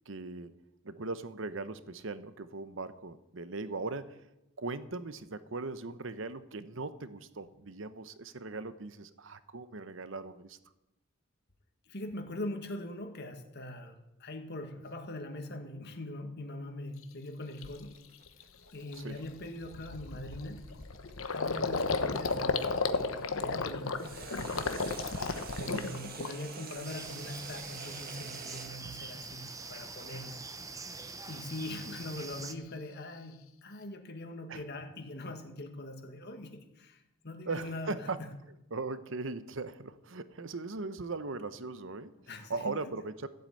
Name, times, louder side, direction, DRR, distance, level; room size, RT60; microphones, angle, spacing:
voice 1, 0.1-0.6 0.8-4.2 4.6-10.6 18.9-19.2 21.6-21.8 25.5-26.0 30.4-30.7 34.5-34.6 37.5-38.2 38.7-42.1 42.5-43.3, right 3 dB, 65° right, 13 dB, 0.9 m, -39 dB
voice 2, 11.9-18.0 18.7-20.7 21.3-22.6 22.9-24.6 25.6-30.3 31.3-38.3 42.3-42.8, left 1 dB, 55° left, 6 dB, 1.9 m, -42 dB
Gurgling, 17.0-17.1 17.6-17.9 18.3-18.4 18.7-26.7 27.0-27.7, left 4 dB, 75° left, 1.0 m, -34 dB
sound 1, 17.7-22.9 24.0-28.7, right 5 dB, 45° right, 1.5 m, -47 dB
sound 2, 26.8-32.5, right 4 dB, 15° right, 0.9 m, -44 dB
15.5 x 8.1 x 8.8 m, 0.92 s
head